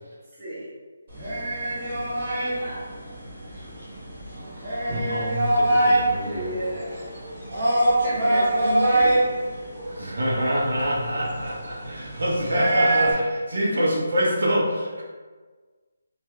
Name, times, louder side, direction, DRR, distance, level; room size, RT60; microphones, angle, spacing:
voice 1, 0.4-0.7 6.2-6.9 7.6-9.1, right 1 dB, 5° right, -16 dB, 0.8 m, -31 dB
sound 1, 1.1-13.1, right 1 dB, 25° right, 1.1 m, -25 dB
voice 2, 4.9-6.5 9.9-15.0, equal, 60° right, -3 dB, 0.7 m, -26 dB
2.9 x 2.3 x 3.1 m, 1.4 s
hypercardioid pair, 180°, 0 cm